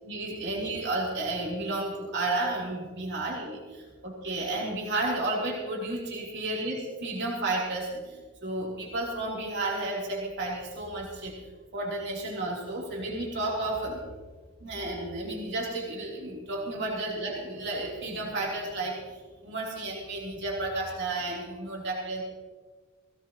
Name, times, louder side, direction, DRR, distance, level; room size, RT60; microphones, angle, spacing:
voice 1, 0.0-11.5 11.7-14.0 14.6-22.2, right 2 dB, 55° right, -3 dB, 3.4 m, -32 dB
19.5 x 17.0 x 3.0 m, 1.4 s
head